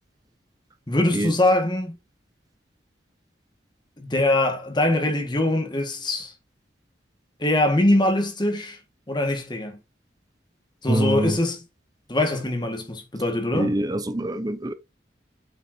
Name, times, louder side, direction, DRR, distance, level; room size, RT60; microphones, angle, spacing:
voice 1, 0.9-2.0 4.0-6.3 7.4-8.8 9.1-9.8 10.8-11.6 12.1-13.7, left 1 dB, 25° left, 1.6 m, -23 dB
voice 2, 10.9-11.3 13.5-14.7, right 1 dB, 20° right, 0.7 m, -24 dB
7.7 x 5.7 x 2.7 m
head